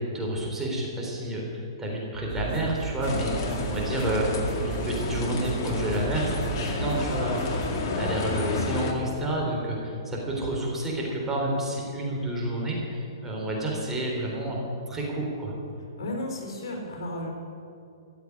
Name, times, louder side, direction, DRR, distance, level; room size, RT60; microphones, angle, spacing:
voice 1, 0.1-4.3 4.6-14.6 14.9-15.5, right 1 dB, 10° right, -3 dB, 3.8 m, -30 dB
sound 1, 2.3-7.8, right 8 dB, 35° right, 1.1 m, -36 dB
sound 2, 3.0-8.9, left 3 dB, 45° left, 2.2 m, -30 dB
voice 2, 16.0-17.3, left 1 dB, 60° left, 1 dB, 4.2 m, -33 dB
15.0 x 8.4 x 9.6 m, 2.6 s
hypercardioid pair, 125°, 3 cm